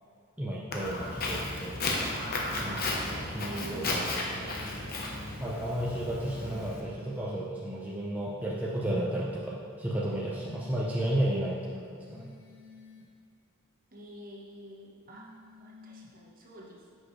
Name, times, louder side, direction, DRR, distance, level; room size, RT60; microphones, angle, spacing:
voice 1, 0.4-2.1 2.6-4.9 5.4-12.2, right 1 dB, 5° right, -6 dB, 0.6 m, -33 dB
Walk footsteps, 0.7-6.8, left 2 dB, 45° left, 1.0 m, -34 dB
sound 1, 2.4-3.4 4.4-5.4 6.4-7.4 8.4-9.4 10.0-11.1 12.0-13.1 15.1-16.1, equal, 70° left, 1.3 m, -52 dB
voice 2, 3.6-3.9 6.3-6.7 13.9-15.3 15.6-17.0, equal, 40° right, -3 dB, 1.2 m, -49 dB
9.5 x 6.2 x 3.2 m, 2.2 s
head